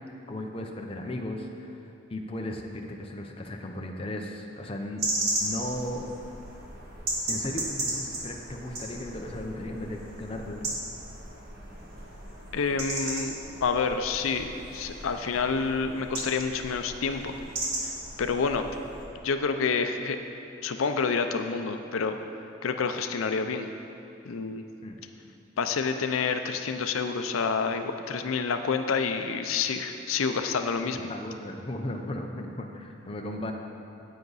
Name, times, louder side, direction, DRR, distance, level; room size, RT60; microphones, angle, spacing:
voice 1, 0.3-5.0 5.4-6.1 7.3-10.7 24.8-25.0 31.1-33.5, left 1 dB, 25° left, 2 dB, 0.6 m, -36 dB
sound 1, 5.0-19.0, right 1 dB, 50° right, 1.8 m, -35 dB
voice 2, 12.5-13.3 13.6-17.3 17.8-17.9 18.2-18.7 19.2-20.2 20.6-22.2 22.6-23.7 24.3-24.6 25.6-31.1, left 5 dB, 85° left, 7 dB, 0.5 m, -28 dB
10.0 x 8.3 x 4.0 m, 2.8 s
head